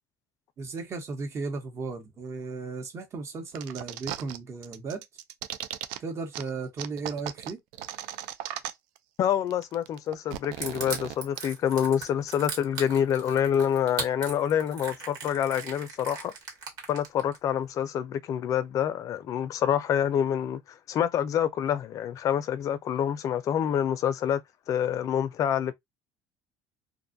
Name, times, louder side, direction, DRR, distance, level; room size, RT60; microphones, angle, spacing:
voice 1, 0.6-5.0 6.0-7.6, right 4 dB, 40° right, 1.0 m, -35 dB
sound 1, 3.5-4.4 4.6-6.0 6.3-6.4 6.8-9.0 9.2-9.3 9.5-11.4, right 12 dB, 75° right, 0.4 m, -37 dB
voice 2, 9.2-16.3 16.9-24.4 24.7-25.7, left 9 dB, 50° left, 0.4 m, -27 dB
Crushing, 10.6-17.4, right 5 dB, 60° right, 1.3 m, -37 dB
2.6 x 2.3 x 2.6 m
supercardioid pair, 105°, 8 cm